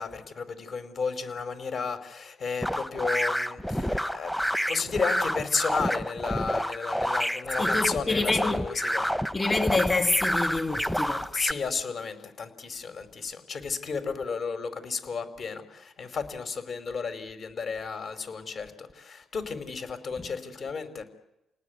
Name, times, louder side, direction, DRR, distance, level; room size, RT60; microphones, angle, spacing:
voice 1, 0.0-4.3 4.7-9.1 11.3-21.0, left 5 dB, 50° left, 4.8 m, -33 dB
sound 1, 2.6-11.5, equal, 5° left, 1.1 m, -29 dB
voice 2, 7.6-8.7 9.3-11.3, left 3 dB, 25° left, 2.5 m, -27 dB
29.5 x 19.0 x 9.6 m
cardioid pair, 90°, 0 cm